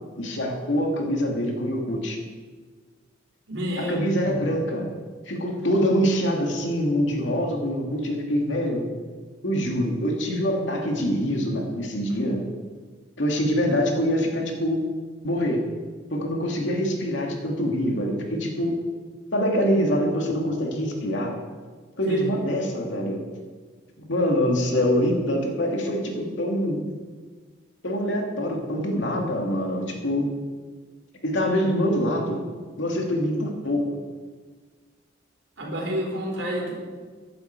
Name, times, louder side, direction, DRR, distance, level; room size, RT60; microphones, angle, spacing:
voice 1, 0.2-2.2 3.8-4.9 5.3-8.9 9.4-12.4 13.2-14.8 15.2-15.6 16.1-18.8 19.3-21.3 22.0-23.2 24.1-26.8 27.8-30.3 31.2-32.4 32.8-33.9, equal, 80° left, 1 dB, 2.3 m, -24 dB
voice 2, 3.5-4.4 22.1-22.3 35.6-36.7, equal, 80° right, -1 dB, 4.0 m, -30 dB
15.0 x 9.8 x 4.6 m, 1.5 s
head